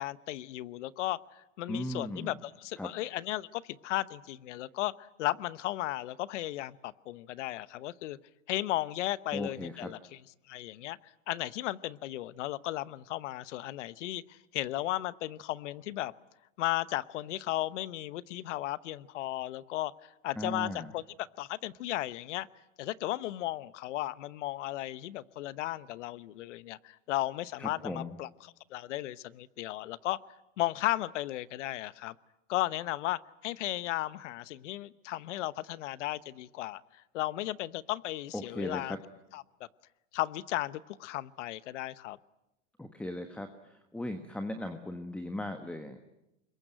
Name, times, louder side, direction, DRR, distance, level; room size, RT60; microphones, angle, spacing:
voice 1, 0.0-8.2 8.5-10.2 10.5-11.0 11.3-16.1 16.6-22.5 22.8-30.2 30.6-32.1 32.5-39.0 39.3-39.4 40.1-42.2, left 15 dB, 65° left, 18 dB, 1.0 m, -35 dB
voice 2, 1.7-2.3 2.8-2.9 9.3-9.9 20.4-20.9 27.6-28.1 38.3-39.0 42.8-46.0, left 1 dB, 5° left, 7 dB, 1.2 m, -37 dB
26.0 x 22.0 x 9.0 m, 0.89 s
supercardioid pair, 135°, 38 cm